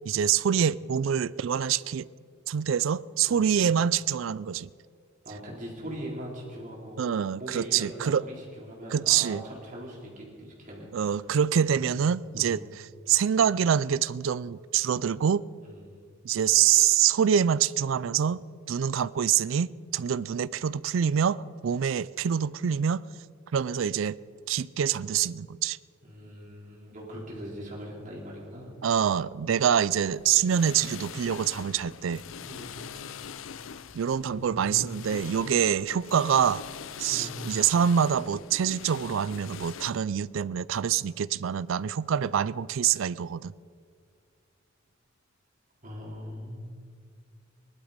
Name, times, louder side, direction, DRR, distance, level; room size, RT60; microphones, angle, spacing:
voice 1, 0.1-2.1 2.5-4.7 7.0-8.2 8.9-9.4 10.9-12.6 13.1-15.4 16.2-23.1 23.5-24.2 24.5-25.8 28.8-32.2 33.9-36.6 37.0-43.5, right 8 dB, 70° right, 0.4 m, -25 dB
voice 2, 5.2-7.0 7.4-10.9 11.7-11.9 12.3-12.6 15.6-16.0 26.0-28.7 32.4-32.9 34.2-35.0 37.1-37.4 45.8-46.7, equal, 40° right, 4.2 m, -41 dB
sound 1, 30.1-39.9, left 7 dB, 70° left, 0.5 m, -43 dB
19.5 x 12.0 x 5.1 m
head